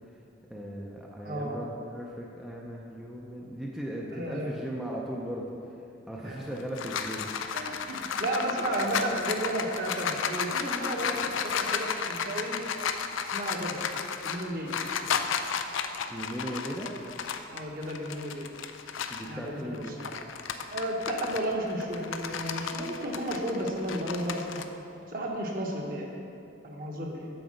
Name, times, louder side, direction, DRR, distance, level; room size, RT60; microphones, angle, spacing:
voice 1, 0.5-5.8 6.1-7.3 16.1-16.9 19.1-19.9, equal, ahead, -3 dB, 0.5 m, -37 dB
voice 2, 1.2-1.6 4.1-4.5 6.2-6.4 7.5-12.6 13.2-13.8 14.2-14.8 17.5-18.5 19.3-20.1 20.7-24.6 25.1-26.1 26.6-27.3, right 1 dB, 45° right, -1 dB, 1.1 m, -33 dB
sound 1, 6.4-19.3 19.7-24.6, left 6 dB, 90° left, 0.4 m, -33 dB
7.9 x 4.8 x 6.4 m, 2.7 s
head